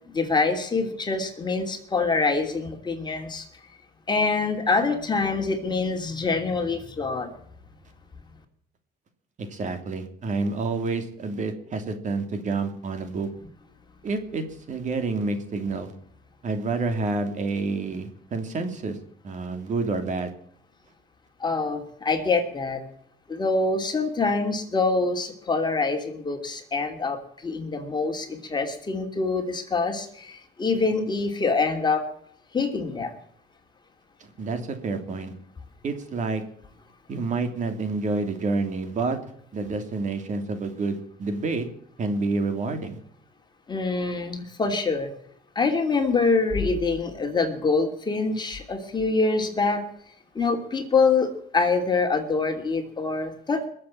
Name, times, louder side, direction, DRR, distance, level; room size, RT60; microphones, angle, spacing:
voice 1, 0.1-3.5 4.1-7.3 21.4-22.8 23.3-32.0 32.5-33.1 43.7-45.1 45.5-49.8 50.3-53.7, left 4 dB, 25° left, 4 dB, 3.0 m, -25 dB
voice 2, 9.4-13.3 14.0-15.9 16.4-19.0 19.2-20.3 34.4-35.3 35.8-36.4 37.1-39.2 39.5-41.7 42.0-43.0, right 3 dB, 45° right, 7 dB, 2.9 m, -28 dB
21.0 x 7.8 x 8.5 m, 0.66 s
cardioid pair, 110°, 17 cm